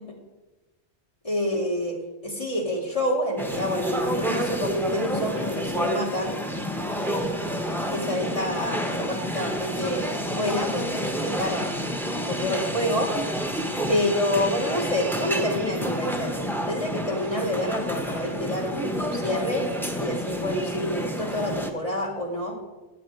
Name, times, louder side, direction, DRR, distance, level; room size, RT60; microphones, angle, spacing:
voice 1, 1.2-2.0 2.2-6.4 7.0-7.5 7.9-11.7 12.2-13.1 13.9-16.4 16.7-19.7 20.0-22.6, equal, 30° left, 1 dB, 2.5 m, -28 dB
sound 1, 3.4-21.7, equal, ahead, 0.9 m, -29 dB
16.5 x 8.3 x 4.7 m, 1.1 s
omnidirectional pair, 1.2 m